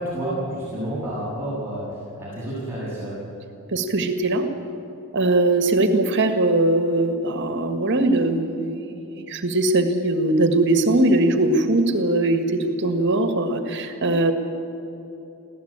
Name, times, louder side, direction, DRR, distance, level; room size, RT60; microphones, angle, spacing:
voice 1, 0.0-3.1, right 1 dB, 10° right, -9 dB, 7.9 m, -29 dB
voice 2, 3.7-4.5 5.1-14.3, right 2 dB, 55° right, 7 dB, 1.8 m, -21 dB
25.5 x 16.5 x 8.9 m, 3.0 s
head